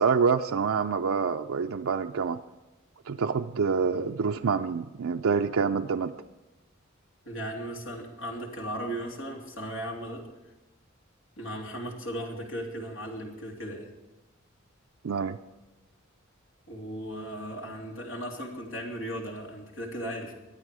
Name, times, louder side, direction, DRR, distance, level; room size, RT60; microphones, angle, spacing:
voice 1, 0.0-2.4 3.1-6.1 15.0-15.4, right 5 dB, 85° right, 4 dB, 0.5 m, -26 dB
voice 2, 7.2-10.2 11.4-13.9 16.7-20.3, equal, 80° left, 0 dB, 3.0 m, -36 dB
23.0 x 8.9 x 4.9 m, 1.1 s
head